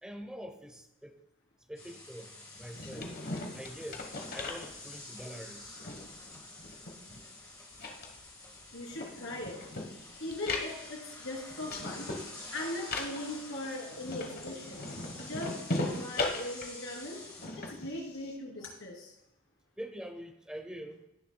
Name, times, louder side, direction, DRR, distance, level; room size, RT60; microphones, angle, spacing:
voice 1, 0.0-1.2 1.7-3.1 3.5-5.8 7.1-7.2 19.8-21.0, equal, 5° right, 6 dB, 0.8 m, -45 dB
sound 1, 1.7-17.5, left 2 dB, 15° left, 2.7 m, -49 dB
sound 2, 2.6-5.2 5.6-7.4 7.7-18.3, left 2 dB, 50° left, 1.3 m, -39 dB
voice 2, 8.7-9.6 9.9-12.1 12.5-14.8 15.2-17.2 17.5-19.1, left 1 dB, 65° left, -2 dB, 3.2 m, -40 dB
17.5 x 6.8 x 2.3 m, 0.87 s
head